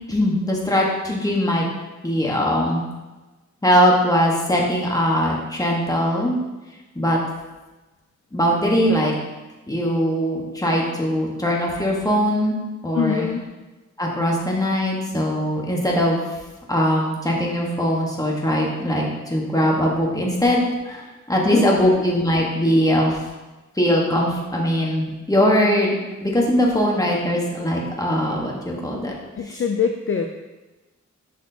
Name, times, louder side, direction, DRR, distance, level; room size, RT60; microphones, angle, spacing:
voice 1, 0.1-1.7 2.0-2.8 3.6-6.3 6.9-7.2 8.3-9.1 9.7-12.6 12.8-13.3 14.0-16.2 16.7-21.0 21.3-23.2 23.8-25.9 26.2-29.2, equal, 10° left, -2 dB, 1.2 m, -21 dB
voice 2, 12.9-13.4 21.5-22.0 29.4-30.2, left 6 dB, 45° left, 5 dB, 0.4 m, -24 dB
6.3 x 6.1 x 2.8 m, 1.1 s
wide cardioid pair, 95°, 31 cm